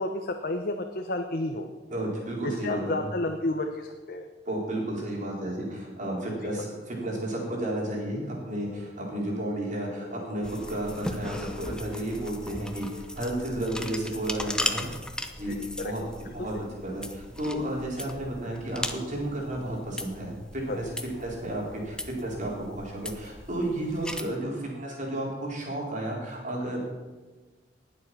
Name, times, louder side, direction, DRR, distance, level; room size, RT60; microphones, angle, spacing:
voice 1, 0.0-1.7 2.6-4.2 6.4-6.6 15.5-15.9 20.7-20.9, left 2 dB, 55° left, 4 dB, 1.0 m, -31 dB
voice 2, 1.9-3.1 4.5-14.9 15.4-15.6 15.8-16.0 16.3-16.5 16.8-20.9 21.2-26.8, right 1 dB, 45° right, -3 dB, 4.3 m, -32 dB
sound 1, 7.4-15.0, left 1 dB, 15° right, 4.0 m, -50 dB
sound 2, 10.4-24.2, left 1 dB, 5° left, 0.9 m, -38 dB
19.0 x 7.6 x 6.2 m, 1.3 s
head